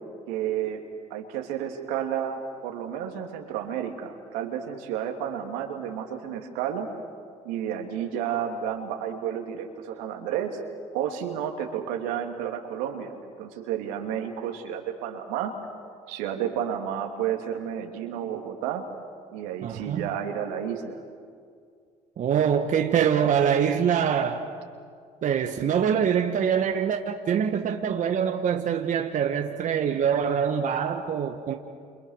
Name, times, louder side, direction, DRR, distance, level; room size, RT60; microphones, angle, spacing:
voice 1, 0.3-0.8 1.1-6.9 7.4-10.6 10.9-15.5 16.1-18.8 19.3-21.0, right 9 dB, 85° right, 3 dB, 2.7 m, -31 dB
voice 2, 19.6-20.0 22.2-24.4 25.2-31.5, right 8 dB, 55° right, 4 dB, 1.6 m, -24 dB
29.5 x 28.5 x 6.5 m, 2.2 s
supercardioid pair, 65°, 16 cm